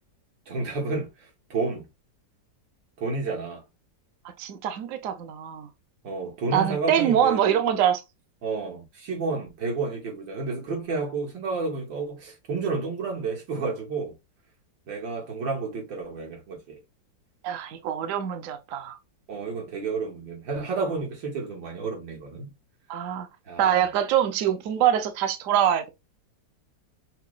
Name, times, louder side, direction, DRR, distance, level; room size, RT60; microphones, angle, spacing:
voice 1, 0.5-1.1 1.5-1.9 3.0-3.6 6.0-7.6 8.4-14.1 14.9-16.8 19.3-22.5 23.5-23.8, right 4 dB, 85° right, 2.1 m, -31 dB
voice 2, 4.4-5.7 6.5-8.0 17.4-19.0 22.9-23.3 23.6-25.9, right 9 dB, 65° right, 0.8 m, -24 dB
5.6 x 2.1 x 2.4 m
omnidirectional pair, 2.0 m